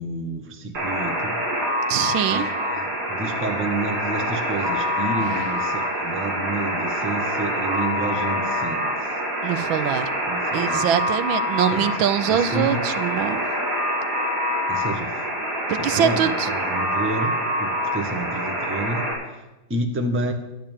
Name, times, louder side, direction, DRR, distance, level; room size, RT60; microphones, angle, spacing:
voice 1, 0.0-1.4 2.3-9.2 10.3-10.9 11.7-11.9 12.3-12.8 14.7-15.1 15.8-19.4 19.7-20.3, right 2 dB, 10° right, 5 dB, 0.6 m, -30 dB
Alarm, 0.7-19.1, equal, 65° right, 3.5 m, -26 dB
voice 2, 1.9-2.5 9.4-10.1 10.5-13.4 15.7-16.5, right 9 dB, 80° right, 13 dB, 1.4 m, -23 dB
11.0 x 5.8 x 9.0 m, 1.0 s
omnidirectional pair, 2.2 m